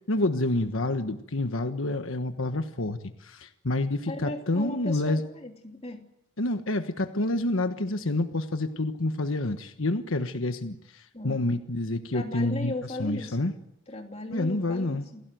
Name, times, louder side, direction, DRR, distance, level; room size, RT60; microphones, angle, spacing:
voice 1, 0.1-5.2 6.4-13.5 14.3-15.1, left 2 dB, 75° left, 7 dB, 1.3 m, -28 dB
voice 2, 4.1-6.0 11.1-11.5 12.1-13.4 13.9-15.2, left 1 dB, 30° left, 2 dB, 3.0 m, -37 dB
27.5 x 17.5 x 9.3 m, 0.85 s
head